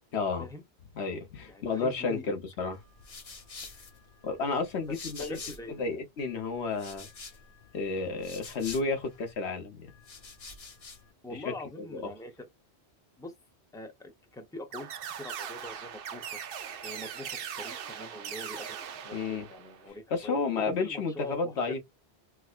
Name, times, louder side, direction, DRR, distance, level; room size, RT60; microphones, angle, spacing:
voice 1, 0.1-0.5 1.0-2.8 4.2-5.4 5.7-7.1 7.7-9.9 11.3-11.9 19.1-19.5 20.1-21.8, left 4 dB, 90° left, 1.2 m, -32 dB
voice 2, 1.5-2.2 4.9-5.0 5.3-5.8 11.2-12.5 13.2-13.3 13.7-14.9 15.2-16.4 16.8-20.4 20.7-21.8, left 1 dB, 5° left, 0.7 m, -43 dB
sound 1, 2.7-5.9 6.2-9.3 9.9-11.1, left 4 dB, 40° left, 0.7 m, -47 dB
sound 2, 14.7-19.9, right 8 dB, 65° right, 0.8 m, -40 dB
4.6 x 2.0 x 2.4 m
omnidirectional pair, 1.1 m